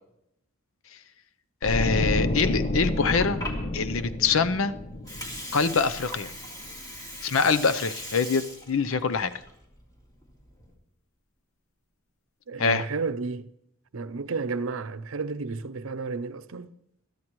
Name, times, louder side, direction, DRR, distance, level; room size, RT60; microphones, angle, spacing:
voice 1, 1.6-3.4 3.7-4.7 5.5-6.3 7.2-9.3 12.6-12.8, left 5 dB, 70° left, 0.7 m, -24 dB
sound 1, 1.6-6.7 7.0-7.2, left 1 dB, 35° left, 0.8 m, -30 dB
Water, 2.8-10.7, equal, 20° left, 2.3 m, -40 dB
voice 2, 12.5-13.5 13.9-16.7, right 4 dB, 75° right, 0.6 m, -31 dB
21.5 x 13.5 x 3.1 m
head